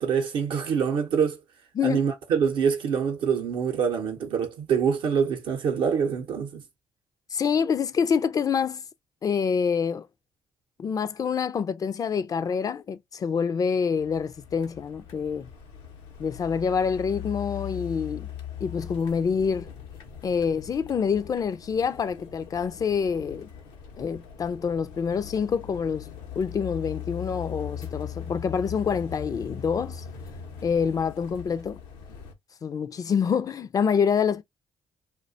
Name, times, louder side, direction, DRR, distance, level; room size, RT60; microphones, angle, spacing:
voice 1, 0.0-1.4 1.8-6.6, right 7 dB, 75° right, 0.6 m, -25 dB
voice 2, 7.3-8.8 9.2-10.1 10.8-15.5 16.2-18.3 18.6-19.7 20.2-23.5 24.0-26.1 26.4-30.0 30.6-31.8 32.6-34.4, left 6 dB, 45° left, 0.4 m, -26 dB
sound 1, 14.0-32.3, left 8 dB, 90° left, 0.6 m, -40 dB
2.4 x 2.2 x 2.6 m
supercardioid pair, 65°, 9 cm